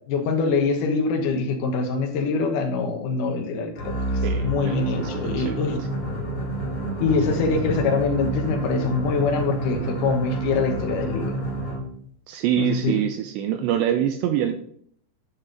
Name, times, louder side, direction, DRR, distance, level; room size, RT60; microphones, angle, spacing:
voice 1, 0.1-3.9 4.4-5.8 7.0-11.4 12.6-13.0, left 4 dB, 75° left, 3 dB, 1.9 m, -24 dB
sound 1, 3.7-12.0, right 1 dB, 40° left, 1.5 m, -28 dB
voice 2, 4.2-5.1 5.4-5.7 7.3-7.4 12.3-14.6, right 10 dB, 85° right, 7 dB, 2.7 m, -25 dB
10.0 x 6.5 x 3.8 m, 0.62 s
omnidirectional pair, 5.4 m